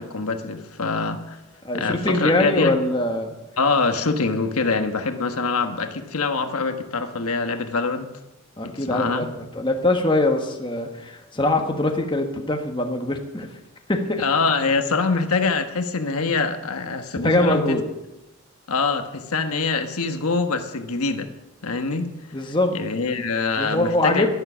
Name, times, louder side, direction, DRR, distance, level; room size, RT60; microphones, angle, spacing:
voice 1, 0.0-1.4 1.7-2.8 3.6-8.1 8.6-9.3 14.2-17.8 18.7-21.3 21.6-22.1 22.4-24.3, left 4 dB, 80° left, 7 dB, 1.2 m, -24 dB
voice 2, 1.6-3.3 8.6-13.5 13.9-14.2 17.2-17.8 22.3-22.7 23.6-24.3, left 1 dB, 20° left, 3 dB, 1.3 m, -22 dB
12.0 x 11.0 x 7.1 m, 0.97 s
head